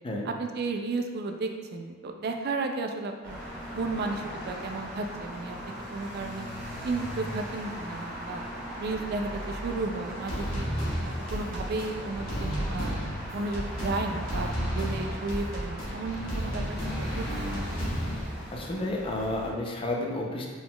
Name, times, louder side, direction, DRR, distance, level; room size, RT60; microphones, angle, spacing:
voice 1, 0.3-3.4 3.7-5.6 5.9-6.5 6.8-8.4 8.8-10.7 11.3-13.0 13.3-14.5 14.7-17.3, right 3 dB, 55° right, 5 dB, 0.3 m, -33 dB
sound 1, 3.2-19.5, equal, 5° left, 1.4 m, -39 dB
sound 2, 10.3-18.2, equal, 75° left, 1.2 m, -32 dB
voice 2, 18.5-20.5, left 1 dB, 25° left, 0 dB, 0.5 m, -31 dB
4.1 x 3.8 x 2.2 m, 1.5 s
head